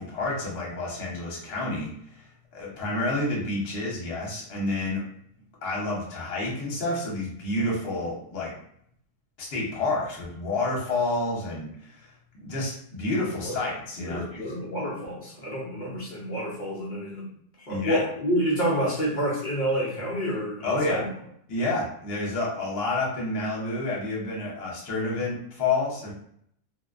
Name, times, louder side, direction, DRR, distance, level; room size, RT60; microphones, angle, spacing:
voice 1, 0.0-2.3 2.5-5.0 5.6-8.5 9.4-12.1 12.4-14.6 17.7-18.0 20.6-21.0 21.5-26.1, left 2 dB, 50° left, -3 dB, 0.9 m, -29 dB
voice 2, 13.9-17.3 17.7-21.1, equal, 70° left, -5 dB, 0.4 m, -28 dB
2.5 x 2.1 x 2.4 m, 0.67 s
omnidirectional pair, 1.5 m